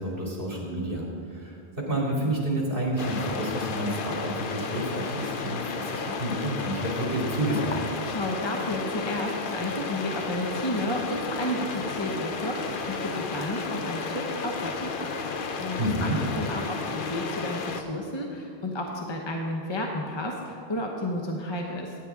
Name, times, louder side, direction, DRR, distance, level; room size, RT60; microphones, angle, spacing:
voice 1, 0.0-7.8 15.8-16.2, right 1 dB, 60° right, -3 dB, 2.6 m, -29 dB
sound 1, 3.0-17.8, left 4 dB, 60° left, 0.8 m, -33 dB
voice 2, 8.0-15.2 15.6-16.1 16.4-22.0, left 1 dB, 30° left, 1 dB, 0.8 m, -32 dB
14.5 x 9.1 x 3.6 m, 2.8 s
omnidirectional pair, 1.0 m